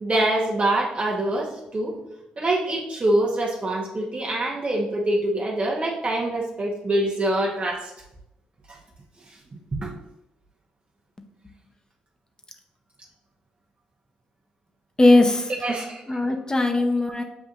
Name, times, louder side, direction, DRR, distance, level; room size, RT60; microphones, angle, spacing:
voice 1, 0.0-2.0 2.4-7.9 8.7-8.8 9.8-9.9 15.6-16.2 16.6-16.8, right 1 dB, 40° right, -2 dB, 0.9 m, -25 dB
voice 2, 15.0-15.5 16.1-17.2, left 2 dB, 20° left, 5 dB, 0.7 m, -19 dB
7.1 x 2.6 x 2.5 m, 0.86 s
supercardioid pair, 50°, 3 cm